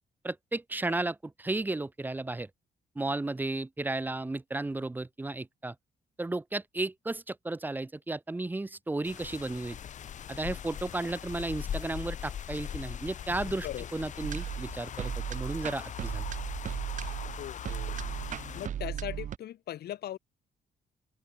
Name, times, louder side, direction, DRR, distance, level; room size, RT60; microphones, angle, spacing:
voice 1, 0.2-2.5 2.9-5.7 6.2-9.8 10.3-13.7 13.9-16.2, right 2 dB, 10° right, 1.3 m, -34 dB
sound 1, 9.0-18.7, left 9 dB, 50° left, 1.6 m, -40 dB
sound 2, 14.2-19.4, right 10 dB, 50° right, 1.1 m, -36 dB
voice 2, 17.3-18.0 18.5-20.2, left 12 dB, 75° left, 3.9 m, -39 dB
open air
wide cardioid pair, 180°, 17 cm